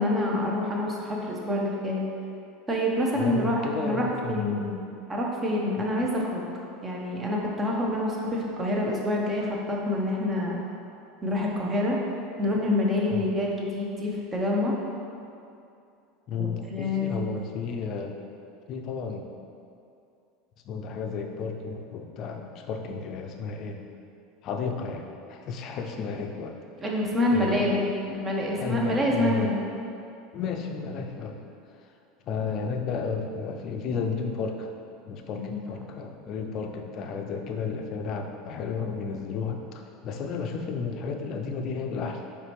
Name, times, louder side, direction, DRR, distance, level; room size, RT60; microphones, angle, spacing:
voice 1, 0.0-2.1 2.7-4.8 5.1-6.4 6.8-10.6 11.2-12.0 12.4-14.7 16.4-17.2 26.8-29.6 35.3-35.6, left 1 dB, 25° right, -2 dB, 0.8 m, -27 dB
voice 2, 3.2-4.8 5.8-5.9 13.1-13.2 16.3-18.2 18.7-19.3 20.6-23.8 24.4-26.6 27.3-27.7 28.5-29.6 30.3-31.4 32.3-34.7 35.1-42.2, left 5 dB, 50° left, 4 dB, 0.4 m, -33 dB
4.8 x 3.3 x 3.1 m, 2.6 s
hypercardioid pair, 90°, 0 cm